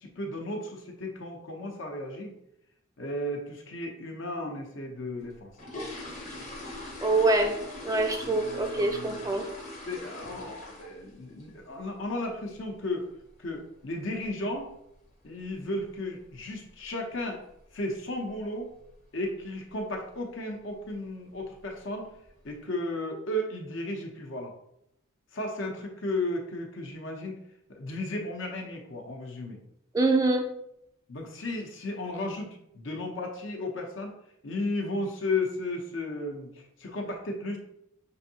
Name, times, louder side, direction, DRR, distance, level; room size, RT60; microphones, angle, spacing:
voice 1, 0.0-2.3 3.0-5.5 8.2-9.2 9.9-13.1 13.4-14.7 15.2-17.4 17.7-18.7 19.1-22.1 22.4-24.5 25.3-27.4 27.7-29.6 31.1-32.5 32.7-34.1 34.4-37.6, left 1 dB, 60° left, 2 dB, 0.8 m, -34 dB
sound 1, 5.2-11.1 11.4-11.7 12.0-12.1 12.5-12.6 13.0-13.2 13.5-13.6 14.2-14.3 14.5-14.7 15.2-15.5 15.8-15.9 16.3-16.5 16.8-16.9 17.3-17.4 18.1-18.4 18.7-19.0 19.4-19.5 19.9-20.0 20.8-20.9 21.3-21.8 22.3-22.4, left 2 dB, 30° left, 0.9 m, -42 dB
voice 2, 7.0-7.6 7.8-9.4 29.9-30.5, right 2 dB, 15° right, 4 dB, 0.3 m, -25 dB
6.3 x 2.6 x 2.8 m, 0.77 s
head